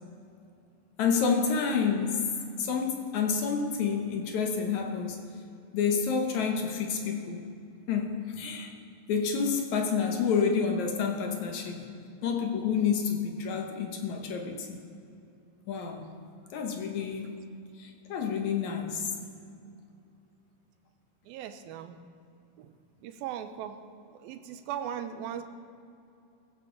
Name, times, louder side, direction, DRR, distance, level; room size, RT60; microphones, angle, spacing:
voice 1, 1.0-2.3 2.6-5.3 5.7-7.4 7.9-8.7 9.1-11.9 12.2-14.8 15.7-16.1 16.5-17.4 17.8-19.1, left 6 dB, 65° left, 3 dB, 2.2 m, -29 dB
voice 2, 21.3-22.0 22.6-22.7 23.0-23.8 24.1-25.4, right 9 dB, 90° right, 9 dB, 2.6 m, -38 dB
18.5 x 16.0 x 3.9 m, 2.6 s
omnidirectional pair, 4.1 m